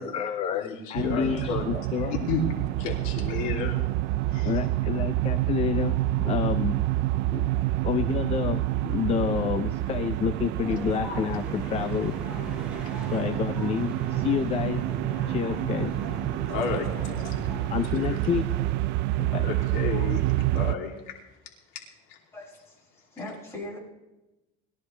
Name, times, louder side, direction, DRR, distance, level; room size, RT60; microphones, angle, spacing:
voice 1, 0.0-2.1 4.4-7.1 7.3-7.6 7.8-12.1 13.1-14.8 15.3-15.9 17.7-18.7 19.2-19.5 19.9-20.1, left 8 dB, 30° left, 9 dB, 0.6 m, -29 dB
voice 2, 0.5-1.6 2.0-2.5 2.8-3.8 4.3-4.5 16.5-16.9 17.2-17.3 17.9-18.2 19.4-20.9, left 6 dB, 75° left, 0 dB, 3.0 m, -32 dB
sound 1, 1.0-20.8, right 16 dB, 55° right, 0.4 m, -28 dB
sound 2, 10.6-17.9, right 1 dB, 5° right, 4.6 m, -37 dB
voice 3, 22.3-23.8, left 1 dB, 15° left, -5 dB, 6.9 m, -40 dB
21.0 x 14.5 x 3.3 m, 1.0 s
cardioid pair, 165°, 21 cm